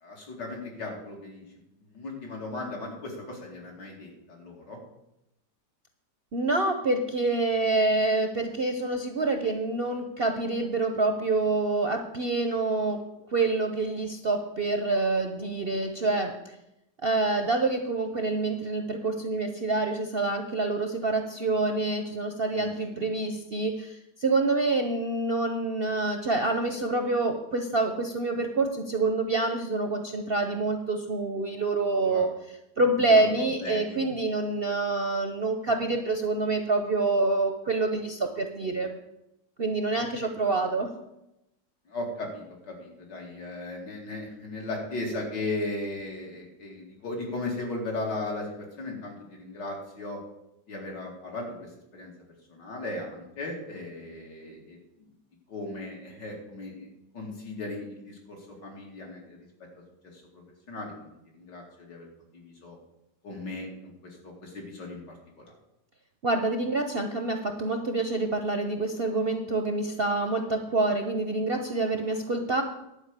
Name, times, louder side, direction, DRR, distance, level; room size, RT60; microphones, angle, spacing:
voice 1, 0.0-1.4 1.9-4.8 22.5-22.7 23.0-23.1 32.0-32.3 33.1-33.3 33.6-34.0 41.9-50.2 50.7-52.1 52.5-55.1 55.5-56.9 57.1-59.4 60.1-60.2 60.7-61.1 61.3-62.1 62.3-62.8 63.2-65.0 65.4-65.5, left 2 dB, 75° left, -1 dB, 3.2 m, -37 dB
voice 2, 6.3-13.0 13.3-16.4 17.0-32.3 32.8-38.9 39.6-40.9 66.2-72.6, right 3 dB, 50° right, 5 dB, 0.7 m, -27 dB
11.0 x 5.1 x 8.2 m, 0.87 s
omnidirectional pair, 1.9 m